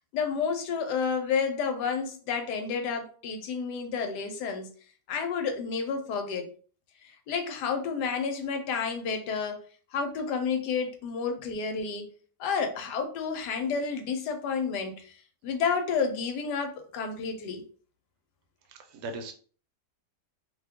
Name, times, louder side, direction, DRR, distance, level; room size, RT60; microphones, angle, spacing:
voice 1, 0.1-4.7 5.1-6.5 7.0-9.6 9.9-12.1 12.4-15.2 15.4-17.6, left 5 dB, 70° left, 1.2 m, -30 dB
voice 2, 18.7-19.3, right 2 dB, 75° right, 1.2 m, -38 dB
2.9 x 2.3 x 3.4 m
omnidirectional pair, 1.9 m